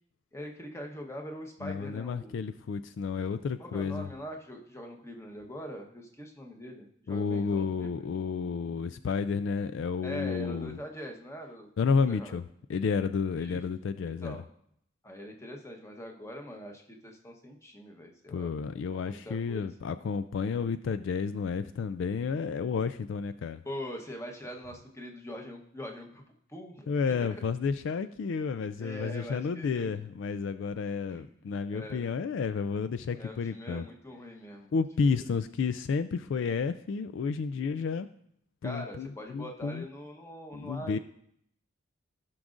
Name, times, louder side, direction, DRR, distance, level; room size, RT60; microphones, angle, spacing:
voice 1, 0.3-2.3 3.6-7.9 10.0-11.7 12.1-12.4 13.4-13.6 14.0-14.4 15.0-18.5 18.9-19.7 23.6-26.2 26.5-27.2 28.8-29.9 31.1-31.3 31.7-32.1 33.2-34.7 35.0-35.2 38.6-41.0, equal, 15° left, 2 dB, 1.0 m, -42 dB
voice 2, 1.6-4.1 7.1-10.8 11.8-12.4 12.7-14.4 18.3-23.6 26.9-33.8 34.7-38.1 38.6-39.9 40.5-41.0, left 5 dB, 60° left, 11 dB, 0.3 m, -31 dB
16.0 x 6.1 x 2.5 m, 0.70 s
head